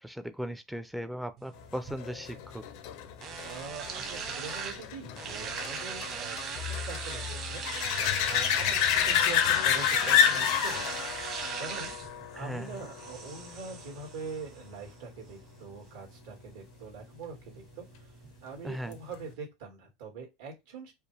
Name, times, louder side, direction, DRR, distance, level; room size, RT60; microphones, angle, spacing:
voice 1, 0.0-2.6 12.4-12.8 18.6-19.0, equal, 5° right, 0.4 m, -38 dB
sound 1, 1.4-19.4, right 6 dB, 40° right, 1.2 m, -40 dB
sound 2, 2.0-13.3 18.9-19.0, left 10 dB, 60° left, 0.5 m, -29 dB
voice 2, 3.4-7.6 8.2-11.0 11.6-11.9 12.3-18.1 18.4-20.9, right 4 dB, 75° right, 2.1 m, -43 dB
4.7 x 2.5 x 3.3 m
supercardioid pair, 150°, 0 cm